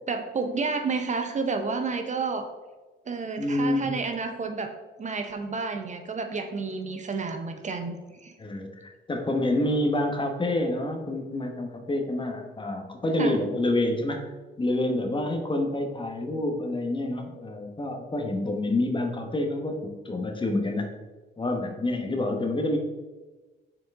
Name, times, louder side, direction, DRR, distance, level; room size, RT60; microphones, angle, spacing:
voice 1, 0.1-2.5 3.1-4.7 5.0-8.3 13.2-13.4, right 4 dB, 35° right, 7 dB, 0.6 m, -30 dB
voice 2, 3.4-3.9 8.4-14.3 14.6-21.0 21.4-22.8, left 1 dB, 25° left, 3 dB, 1.0 m, -28 dB
6.6 x 4.5 x 3.6 m, 1.2 s
cardioid pair, 90°, 20 cm